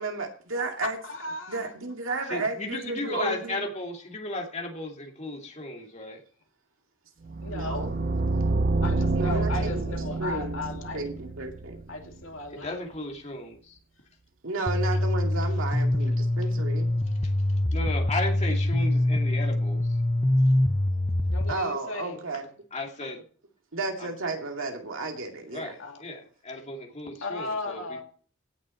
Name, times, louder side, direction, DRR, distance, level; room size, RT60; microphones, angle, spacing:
voice 1, 0.0-1.0 1.5-3.7 7.5-7.9 9.1-9.9 10.2-10.6 10.9-11.8 14.4-16.9 21.5-22.5 23.7-25.7, right 3 dB, 75° right, 2.3 m, -33 dB
voice 2, 0.8-1.7 7.4-7.9 8.8-11.1 11.9-12.8 18.9-19.0 21.3-22.3 25.8-26.0 27.2-28.0, left 3 dB, 75° left, 2.4 m, -36 dB
voice 3, 2.3-6.2 9.5-9.7 12.5-13.8 17.2-17.3 17.7-19.9 22.7-23.2 24.0-24.1 25.5-28.0, left 2 dB, 35° left, 2.4 m, -35 dB
sound 1, 7.3-12.2, right 3 dB, 45° right, 0.6 m, -28 dB
sound 2, 14.7-21.5, left 1 dB, 15° left, 0.6 m, -24 dB
17.0 x 6.7 x 4.3 m
head